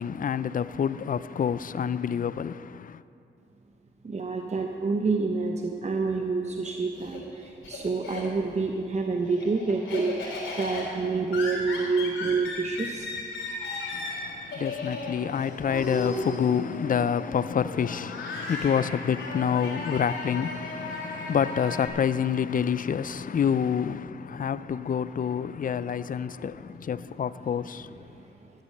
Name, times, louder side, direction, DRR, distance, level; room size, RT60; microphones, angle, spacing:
voice 1, 0.0-3.0 13.9-28.1, left 7 dB, 45° left, 0.4 m, -28 dB
voice 2, 4.0-13.1 28.1-28.5, right 4 dB, 35° right, 0.8 m, -28 dB
Laughter, 6.5-8.6 9.0-21.9, left 2 dB, 90° left, 3.3 m, -36 dB
13.0 x 8.4 x 6.6 m
cardioid pair, 60°, 20 cm